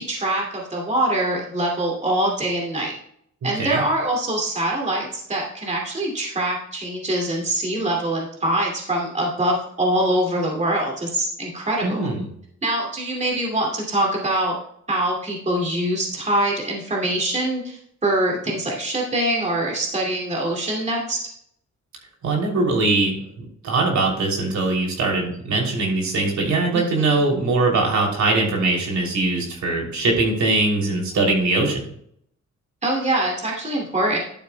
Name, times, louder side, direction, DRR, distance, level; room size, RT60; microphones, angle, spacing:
voice 1, 0.0-2.9 3.4-12.1 12.6-14.6 14.9-21.2 26.7-27.2 32.8-34.2, right 1 dB, 25° right, -1 dB, 2.4 m, -24 dB
voice 2, 11.8-12.3 22.2-31.8, right 2 dB, 70° right, 0 dB, 3.0 m, -21 dB
11.5 x 8.8 x 2.2 m, 0.68 s
cardioid pair, 140°, 30 cm